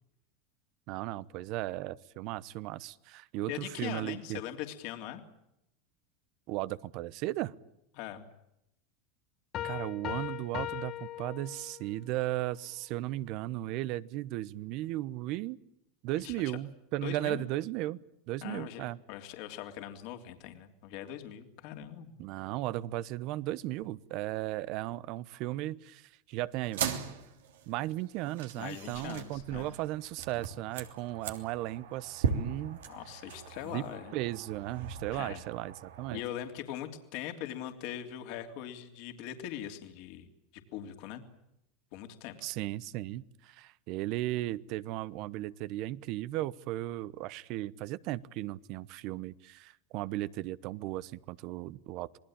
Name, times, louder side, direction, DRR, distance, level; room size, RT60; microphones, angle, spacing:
voice 1, 0.9-4.4 6.5-7.5 9.6-15.6 16.0-18.0 18.3-19.0 22.2-26.8 27.7-32.8 33.6-33.8 34.1-36.2 42.4-52.2, right 16 dB, 55° right, 18 dB, 1.0 m, -36 dB
voice 2, 3.5-5.2 7.9-8.2 16.2-16.6 17.0-17.4 18.4-22.1 28.6-29.7 32.9-34.1 35.1-35.4 36.1-40.3 40.5-41.2 41.9-42.4, left 11 dB, 60° left, 5 dB, 3.2 m, -41 dB
sound 1, 9.5-12.0, left 13 dB, 45° left, 1.4 m, -39 dB
sound 2, 26.6-36.2, right 7 dB, 85° right, 3.1 m, -39 dB
27.5 x 19.5 x 8.8 m, 0.82 s
hypercardioid pair, 110°, 0 cm